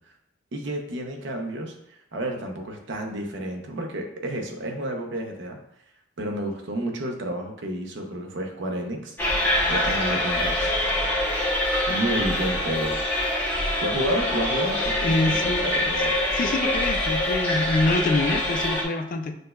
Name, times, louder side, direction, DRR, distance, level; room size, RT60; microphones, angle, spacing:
voice 1, 0.5-5.6 6.2-9.2 9.7-10.7 11.9-13.0 13.8-16.2, right 1 dB, 65° right, 2 dB, 0.6 m, -30 dB
sound 1, 9.2-18.8, left 1 dB, 10° left, 0.7 m, -25 dB
voice 2, 15.0-15.7 16.4-19.4, left 2 dB, 45° left, 6 dB, 0.3 m, -25 dB
6.3 x 2.2 x 2.3 m, 0.78 s
head